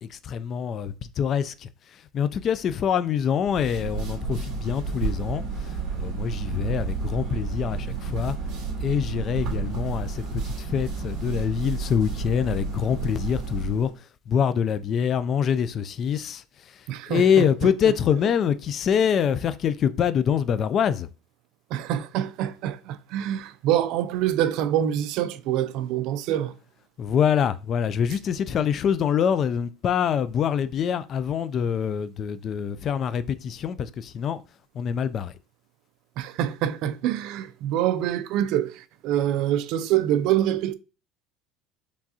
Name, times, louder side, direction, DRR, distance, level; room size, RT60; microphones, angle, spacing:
voice 1, 0.0-1.7 2.1-8.4 8.8-13.9 14.3-16.4 16.7-16.8 17.1-21.1 27.0-34.4 34.7-35.3, left 8 dB, 35° left, 0.3 m, -25 dB
sound 1, 3.4-13.9, right 5 dB, 45° right, 2.1 m, -31 dB
voice 2, 16.9-17.5 17.9-18.0 21.7-26.5 36.2-40.7, right 11 dB, 60° right, 0.3 m, -25 dB
4.7 x 3.4 x 2.7 m
cardioid pair, 140°, 0 cm